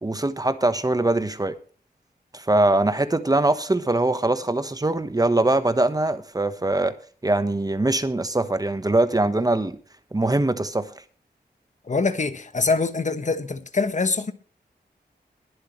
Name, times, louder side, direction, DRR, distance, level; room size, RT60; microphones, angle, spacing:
voice 1, 0.0-1.5 2.3-7.0 7.2-9.8 10.1-10.9, right 2 dB, 20° right, 1.2 m, -22 dB
voice 2, 11.9-14.3, left 4 dB, 45° left, 1.3 m, -24 dB
21.5 x 7.9 x 3.2 m
wide cardioid pair, 100°, 17 cm